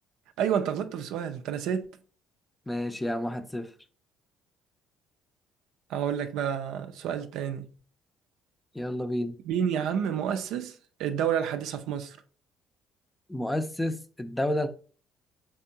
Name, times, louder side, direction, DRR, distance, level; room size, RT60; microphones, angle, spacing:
voice 1, 0.4-1.9 5.9-7.7 9.4-12.2, right 8 dB, 75° right, 0.4 m, -29 dB
voice 2, 2.7-3.7 8.8-9.4 13.3-14.7, left 1 dB, 10° left, 0.5 m, -30 dB
3.6 x 3.4 x 2.7 m
supercardioid pair, 65°, 0 cm